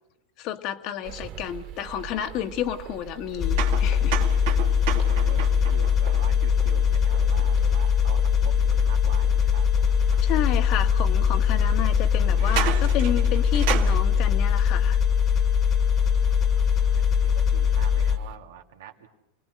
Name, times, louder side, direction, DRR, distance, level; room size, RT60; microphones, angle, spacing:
voice 1, 0.4-4.2 10.2-15.0, left 10 dB, 50° left, 8 dB, 1.5 m, -31 dB
sound 1, 1.0-18.4, right 11 dB, 50° right, 3.1 m, -40 dB
sound 2, 3.4-18.2, left 7 dB, 30° left, 1.7 m, -21 dB
sound 3, 3.6-7.3 10.1-10.2 11.1-11.2 12.3-14.0, right 11 dB, 65° right, 2.1 m, -32 dB
voice 2, 5.2-9.7 16.4-19.1, right 8 dB, 80° right, 3 dB, 2.7 m, -45 dB
29.0 x 19.5 x 6.5 m, 0.92 s
hypercardioid pair, 120°, 0 cm